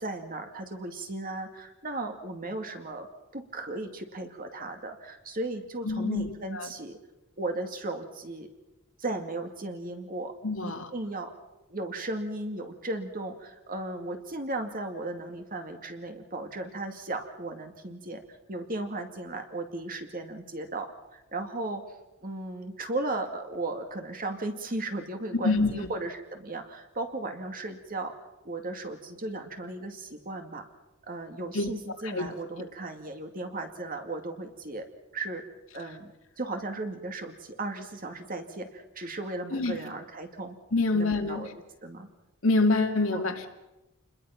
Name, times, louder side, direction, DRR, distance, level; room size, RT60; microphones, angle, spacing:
voice 1, 0.0-3.1 3.3-7.0 7.4-8.5 9.0-10.3 10.6-11.3 11.7-18.2 18.5-21.8 22.2-28.1 28.4-30.7 31.0-34.9 35.1-35.4 35.7-40.6 40.9-41.5 41.8-42.1 43.1-43.3, right 2 dB, 40° right, 5 dB, 2.3 m, -36 dB
voice 2, 5.8-6.7 10.4-10.9 25.4-25.7 31.5-31.7 32.1-32.3 39.5-39.8 40.7-41.5 42.4-43.5, left 3 dB, 65° left, 4 dB, 2.2 m, -26 dB
28.0 x 21.0 x 5.9 m, 1.0 s
head